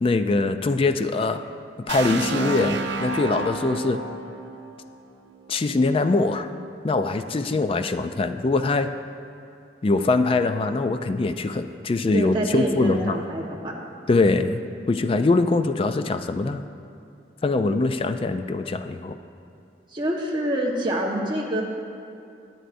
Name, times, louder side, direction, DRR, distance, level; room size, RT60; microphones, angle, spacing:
voice 1, 0.0-1.4 1.9-4.0 5.5-6.5 6.8-8.9 9.8-13.2 14.1-16.6 17.4-19.2, left 3 dB, 30° left, 9 dB, 0.3 m, -23 dB
sound 1, 1.9-5.7, right 3 dB, 80° right, 0.7 m, -31 dB
voice 2, 12.1-13.7 19.9-21.6, right 1 dB, 25° right, -3 dB, 1.2 m, -26 dB
21.0 x 7.9 x 2.6 m, 2.6 s
head